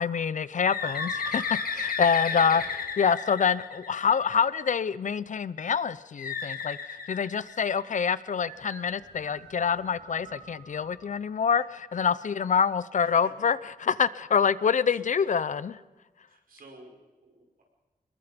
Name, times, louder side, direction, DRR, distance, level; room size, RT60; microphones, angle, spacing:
voice 1, 0.0-2.6 3.0-6.8 7.1-15.8, left 6 dB, 60° left, 17 dB, 0.6 m, -26 dB
Bird, 0.7-4.4 6.2-8.0, left 6 dB, 85° left, 1.9 m, -33 dB
sound 1, 0.8-2.8 8.4-11.1, right 2 dB, 50° right, 3.8 m, -46 dB
voice 2, 2.3-2.9 12.3-12.4 13.0-13.3 14.9-15.0 16.3-17.6, right 2 dB, 80° right, 1 dB, 5.4 m, -50 dB
26.5 x 21.0 x 5.2 m, 1.2 s
wide cardioid pair, 150°, 15 cm